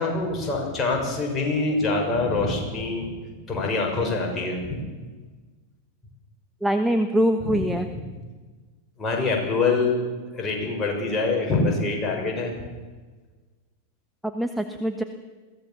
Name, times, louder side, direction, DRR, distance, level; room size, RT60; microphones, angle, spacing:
voice 1, 0.0-3.1 3.5-4.8 7.4-7.6 9.0-10.0 10.3-12.5, left 3 dB, 20° left, 0 dB, 6.3 m, -25 dB
voice 2, 6.6-7.9 14.3-15.0, equal, ahead, 6 dB, 1.2 m, -23 dB
22.0 x 16.0 x 7.3 m, 1.4 s
figure-of-eight pair, 90°, 0 cm